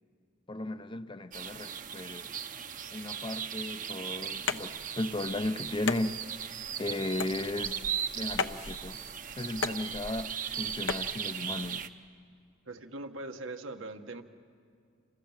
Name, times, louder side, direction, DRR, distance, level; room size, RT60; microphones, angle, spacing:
voice 1, 0.5-2.3 2.9-6.2 6.8-7.8 8.1-9.0 9.4-11.9, left 2 dB, 25° left, 0.6 m, -35 dB
sound 1, 1.3-11.9, right 8 dB, 40° right, 0.9 m, -38 dB
sound 2, 4.4-11.1, left 5 dB, 70° left, 0.9 m, -38 dB
voice 2, 12.6-14.2, right 2 dB, 80° right, 1.6 m, -41 dB
29.0 x 25.0 x 7.4 m
head